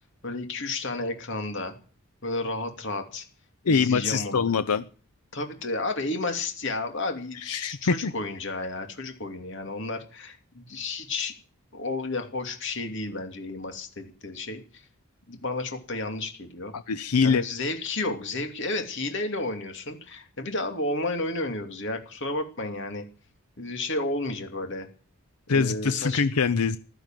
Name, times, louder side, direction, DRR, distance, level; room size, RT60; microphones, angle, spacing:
voice 1, 0.2-1.7 2.2-3.2 3.6-4.6 5.3-11.3 11.7-14.8 15.3-16.7 17.2-23.0 23.6-24.9 25.5-26.2, left 2 dB, 55° left, 5 dB, 2.8 m, -32 dB
voice 2, 3.6-4.8 7.4-8.1 16.7-17.5 25.5-26.8, left 5 dB, 85° left, 13 dB, 0.7 m, -24 dB
15.5 x 12.0 x 7.6 m, 0.40 s
head